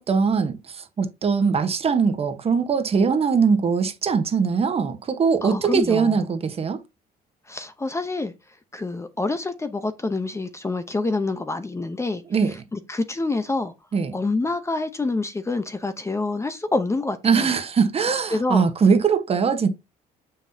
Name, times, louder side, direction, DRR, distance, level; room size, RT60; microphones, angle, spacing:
voice 1, 0.0-6.8 12.3-12.6 13.9-14.1 17.2-19.7, right 5 dB, 35° right, 1.2 m, -21 dB
voice 2, 5.4-6.2 7.5-8.3 8.7-13.7 14.1-17.5 18.3-18.7, left 3 dB, 15° left, 0.8 m, -27 dB
7.1 x 5.8 x 2.8 m
cardioid pair, 110°, 17 cm